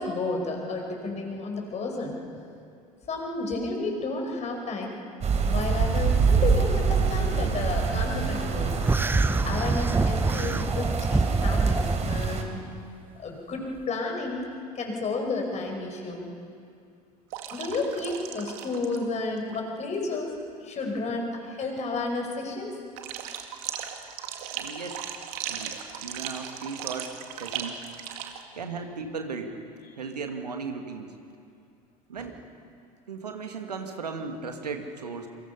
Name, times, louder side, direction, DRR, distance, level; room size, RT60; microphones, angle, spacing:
voice 1, 0.0-2.2 3.1-5.0 5.4-8.8 9.4-12.7 13.2-14.5 14.8-16.3 17.5-20.3 20.6-22.7, left 3 dB, 35° left, 1 dB, 5.4 m, -31 dB
sound 1, 5.2-12.4, right 5 dB, 35° right, 3.3 m, -26 dB
sound 2, 8.8-12.3, right 3 dB, 10° right, 0.7 m, -26 dB
sound 3, 17.3-19.1 19.4-19.6 23.0-28.4, right 9 dB, 60° right, 2.0 m, -37 dB
voice 2, 24.6-25.1 25.5-27.8 28.6-29.6 30.0-31.1 32.1-32.4 33.1-35.3, right 4 dB, 85° right, 5 dB, 1.9 m, -36 dB
28.0 x 24.0 x 5.6 m, 2.5 s
figure-of-eight pair, 70°, 20 cm